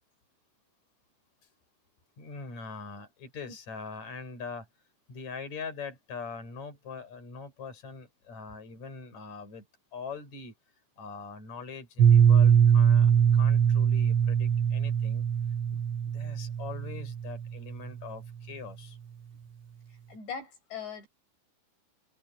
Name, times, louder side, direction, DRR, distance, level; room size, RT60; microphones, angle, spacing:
voice 1, 2.2-4.7 5.1-9.7 9.9-10.5 11.0-15.3 15.7-19.0, left 5 dB, 35° left, 7.5 m, -42 dB
Piano, 12.0-17.6, right 8 dB, 75° right, 1.1 m, -22 dB
voice 2, 20.1-21.1, left 6 dB, 65° left, 8.7 m, -40 dB
omnidirectional pair, 5.4 m